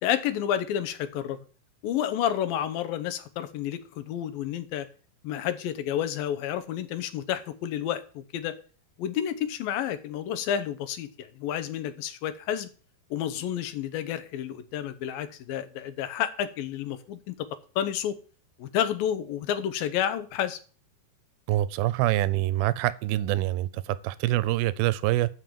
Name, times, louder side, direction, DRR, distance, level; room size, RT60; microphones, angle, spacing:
voice 1, 0.0-1.4 1.8-4.9 5.2-8.6 9.0-12.7 13.1-17.3 17.8-18.2 18.6-20.6, left 10 dB, 75° left, 2.7 m, -30 dB
voice 2, 21.5-25.3, right 15 dB, 85° right, 2.5 m, -25 dB
12.0 x 5.5 x 7.7 m
omnidirectional pair, 4.3 m